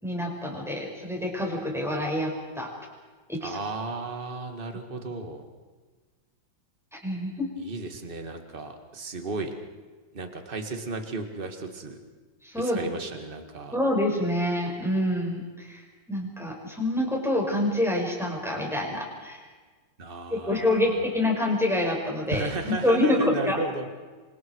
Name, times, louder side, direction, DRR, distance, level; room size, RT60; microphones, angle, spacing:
voice 1, 0.0-2.7 3.3-3.6 7.0-7.5 12.4-12.9 13.7-15.8 16.1-19.4 20.3-23.6, left 1 dB, ahead, -1 dB, 5.9 m, -27 dB
voice 2, 3.4-5.4 7.6-9.5 10.1-12.0 12.6-13.8 20.0-21.1 22.3-23.9, right 3 dB, 25° right, 5 dB, 2.2 m, -34 dB
29.0 x 25.0 x 4.8 m, 1.4 s
omnidirectional pair, 2.1 m